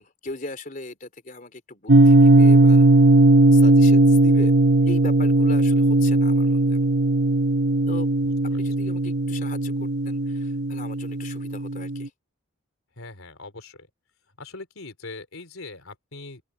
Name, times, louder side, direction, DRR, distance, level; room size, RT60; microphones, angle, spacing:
voice 1, 0.0-2.9 3.5-4.5 4.9-6.8 7.9-8.1 8.6-12.1, left 2 dB, 40° left, 3.6 m, -38 dB
sound 1, 1.9-12.1, right 2 dB, 55° right, 0.8 m, -18 dB
voice 2, 13.0-13.9 14.4-16.4, left 3 dB, 80° left, 3.5 m, -41 dB
open air
head